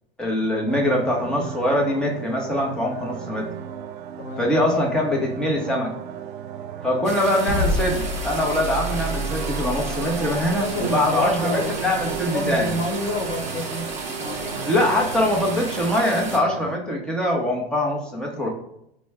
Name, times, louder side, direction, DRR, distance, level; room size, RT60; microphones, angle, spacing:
voice 1, 0.2-3.5 4.4-5.9 6.8-12.8 14.6-18.5, left 1 dB, ahead, -1 dB, 0.9 m, -23 dB
sound 1, 0.7-16.8, right 8 dB, 50° right, 0.4 m, -35 dB
voice 2, 4.2-4.5 10.6-11.7 12.0-13.9 14.2-14.8, left 1 dB, 55° left, 2 dB, 1.1 m, -29 dB
sound 2, 7.0-16.4, right 3 dB, 20° right, 0.9 m, -34 dB
sound 3, 7.5-13.6, equal, 35° left, 0.7 m, -30 dB
4.3 x 2.2 x 3.3 m, 0.77 s
hypercardioid pair, 100°, 32 cm